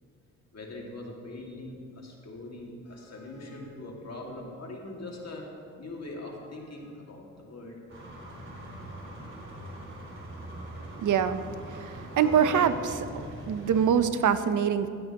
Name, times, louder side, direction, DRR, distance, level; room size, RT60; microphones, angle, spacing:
voice 1, 0.5-5.5 5.8-7.8, left 2 dB, 50° left, -1 dB, 2.1 m, -42 dB
sound 1, 7.9-13.9, right 2 dB, 35° right, 2.7 m, -41 dB
voice 2, 11.0-11.4 11.7-14.9, right 7 dB, 65° right, 11 dB, 0.7 m, -25 dB
16.5 x 7.6 x 2.9 m, 2.2 s
cardioid pair, 60°, 33 cm